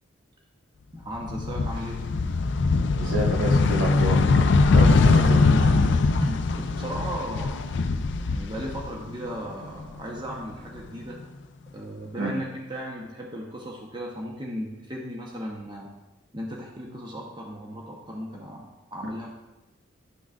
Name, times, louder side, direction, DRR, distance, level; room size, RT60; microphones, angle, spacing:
voice 1, 0.9-2.1 5.1-5.9 6.2-7.7 8.1-11.2 11.7-15.9 16.3-19.3, equal, 20° right, -1 dB, 0.9 m, -36 dB
sound 1, 1.1-9.3 9.6-10.8, left 3 dB, 60° left, 0.4 m, -21 dB
voice 2, 3.0-5.5 12.2-12.3, right 1 dB, 70° right, -1 dB, 1.3 m, -29 dB
11.5 x 6.1 x 2.4 m, 1.0 s
head